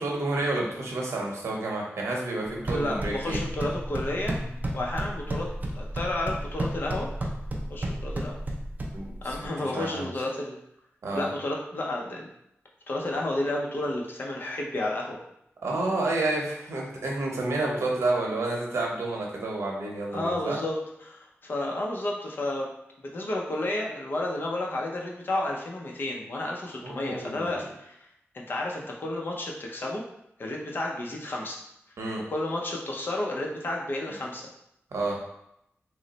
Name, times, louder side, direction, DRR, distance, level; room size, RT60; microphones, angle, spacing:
voice 1, 0.0-3.4 8.9-9.4 9.6-10.1 11.0-11.3 15.6-20.6 26.8-27.5 32.0-32.2 34.9-35.2, right 2 dB, 90° right, -2 dB, 0.7 m, -30 dB
sound 1, 2.5-9.4, right 1 dB, 35° right, 0.5 m, -32 dB
voice 2, 2.6-4.3 4.7-5.5 5.7-7.1 7.7-8.4 9.2-10.6 11.1-12.3 12.9-15.2 20.1-20.8 21.0-22.7 23.0-28.0 28.3-30.0 30.4-31.6 32.3-34.4, left 1 dB, 45° left, -1 dB, 0.5 m, -31 dB
3.0 x 2.0 x 3.9 m, 0.80 s
wide cardioid pair, 125°, 5 cm